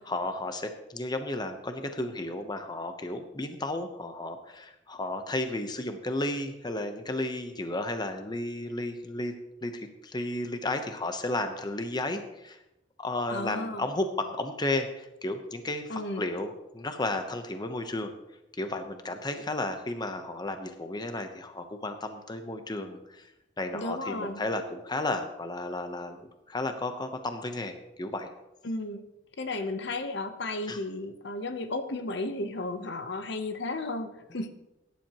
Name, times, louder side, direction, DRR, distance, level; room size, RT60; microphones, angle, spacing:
voice 1, 0.0-9.3 9.6-12.6 13.0-18.1 18.6-23.3 23.6-26.2 26.5-28.3 30.7-30.8, left 2 dB, 20° left, 7 dB, 0.9 m, -33 dB
voice 2, 13.3-13.8 15.9-16.3 23.7-24.4 28.6-29.0 29.4-34.5, left 2 dB, 60° left, 8 dB, 0.9 m, -34 dB
17.0 x 10.5 x 3.0 m, 0.92 s
head